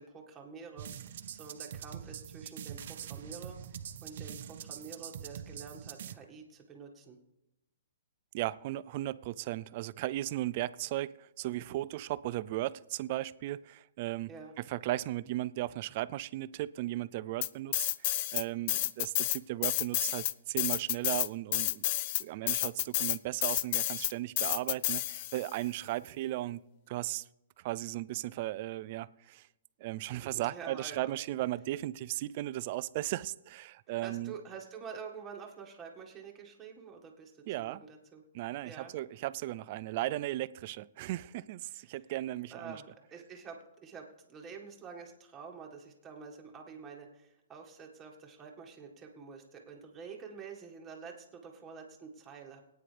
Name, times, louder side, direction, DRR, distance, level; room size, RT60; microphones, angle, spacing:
voice 1, 0.0-3.6 4.0-7.2 14.3-14.5 30.3-31.1 34.0-37.3 37.6-38.2 38.6-38.9 41.7-42.0 42.5-52.6, right 5 dB, 15° right, 1.8 m, -48 dB
sound 1, 0.8-6.2, right 9 dB, 60° right, 0.8 m, -44 dB
voice 2, 8.3-14.3 14.6-17.9 18.3-21.9 22.2-26.6 26.9-27.2 27.6-29.5 29.8-34.3 37.5-37.8 38.3-42.8, right 15 dB, 40° right, 0.4 m, -36 dB
sound 2, 17.4-18.4 18.7-25.5, left 15 dB, 40° left, 0.4 m, -30 dB
22.5 x 9.2 x 3.4 m
hypercardioid pair, 155°, 0 cm